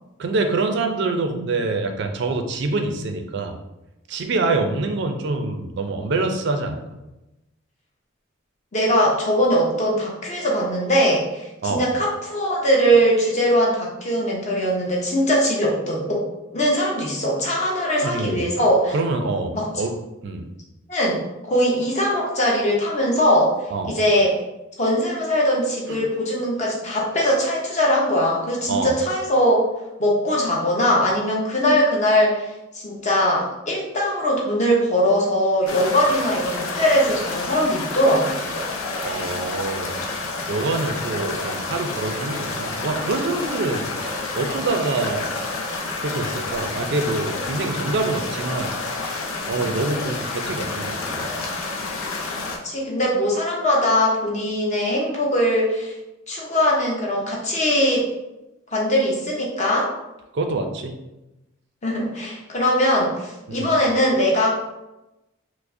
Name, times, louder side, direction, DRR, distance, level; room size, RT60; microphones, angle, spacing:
voice 1, 0.2-3.5 4.1-6.8 11.6-11.8 18.0-18.4 18.9-19.9 20.2-20.5 23.7-24.0 25.9-26.0 28.7-28.9 39.0-39.9 40.5-45.3 46.0-48.7 49.0-51.3 60.3-60.9 63.5-63.7, right 3 dB, 55° right, 5 dB, 0.4 m, -25 dB
voice 2, 8.7-16.2 16.5-19.0 19.5-19.7 20.9-21.2 21.5-23.5 23.9-24.3 24.8-29.6 30.0-38.4 52.6-55.9 56.3-58.1 58.7-59.9 61.8-64.5, equal, 35° left, -3 dB, 0.7 m, -21 dB
sound 1, 35.7-52.6, left 3 dB, 90° left, 0.6 m, -29 dB
4.6 x 2.0 x 2.6 m, 0.97 s
head